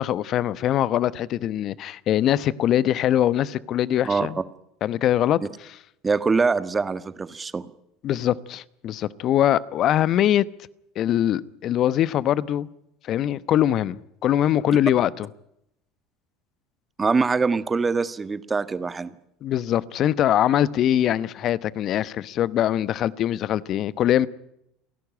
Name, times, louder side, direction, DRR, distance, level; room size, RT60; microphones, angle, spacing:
voice 1, 0.0-4.4 4.8-5.4 8.0-10.4 11.0-12.7 13.1-15.3 19.4-24.3, left 11 dB, 50° left, 1.0 m, -22 dB
voice 2, 6.0-7.7 17.0-19.1, right 4 dB, 25° right, 1.6 m, -23 dB
30.0 x 11.5 x 9.9 m
hypercardioid pair, 75°, 0 cm